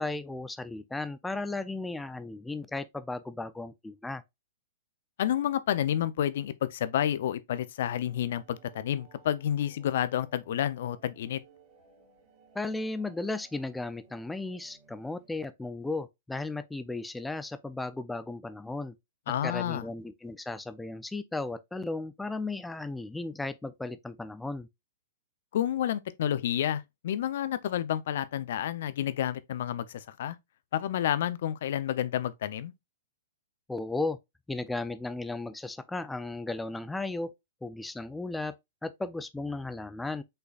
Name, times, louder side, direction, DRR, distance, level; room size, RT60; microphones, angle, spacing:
voice 1, 0.0-4.2 12.5-18.9 19.4-24.7 33.7-34.2 34.5-37.3 37.6-38.6 38.8-40.2, left 2 dB, 5° left, 0.4 m, -35 dB
voice 2, 5.2-11.4 19.3-19.8 25.5-30.4 30.7-32.7, left 10 dB, 60° left, 0.5 m, -30 dB
sound 1, 7.8-15.3, right 4 dB, 35° right, 2.1 m, -60 dB
5.5 x 3.9 x 2.3 m
hypercardioid pair, 115°, 0 cm